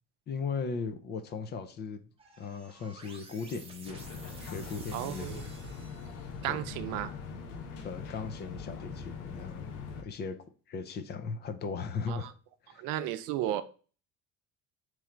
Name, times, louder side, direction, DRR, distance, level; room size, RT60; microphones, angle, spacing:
voice 1, 0.3-2.0 2.4-4.1 4.4-5.4 6.5-6.7 7.8-10.4 10.7-12.3 12.6-12.9, left 5 dB, 30° left, 0.4 m, -37 dB
sound 1, 2.2-6.5, right 3 dB, 15° right, 0.8 m, -52 dB
sound 2, 3.9-10.0, left 5 dB, 80° left, 1.0 m, -42 dB
voice 2, 4.9-5.4 6.4-7.1 12.1-12.2 12.8-13.6, right 13 dB, 85° right, 0.6 m, -33 dB
3.7 x 3.1 x 4.4 m
cardioid pair, 155°, 32 cm